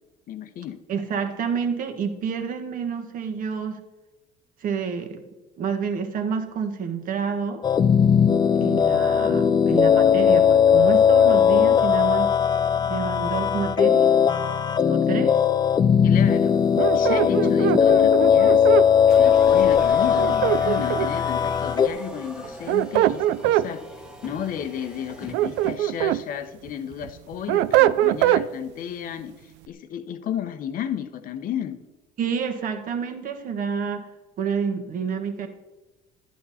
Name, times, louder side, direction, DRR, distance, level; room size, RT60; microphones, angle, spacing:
voice 1, 0.3-0.8 16.0-18.7 19.2-23.8 24.2-31.8, left 9 dB, 50° left, 9 dB, 0.9 m, -33 dB
voice 2, 0.9-3.8 4.6-5.2 5.6-7.6 8.5-12.3 12.9-14.1 14.8-15.4 32.2-34.1 34.4-35.5, right 6 dB, 50° right, 5 dB, 1.5 m, -28 dB
sound 1, 7.6-21.9, left 8 dB, 25° left, 0.5 m, -18 dB
sound 2, 16.8-18.9 20.2-21.3 22.4-23.7 25.1-26.2 26.7-28.5, right 14 dB, 75° right, 0.5 m, -22 dB
sound 3, 19.1-25.8, equal, 5° right, 1.3 m, -41 dB
11.5 x 11.0 x 4.2 m, 1.1 s
cardioid pair, 140°, 18 cm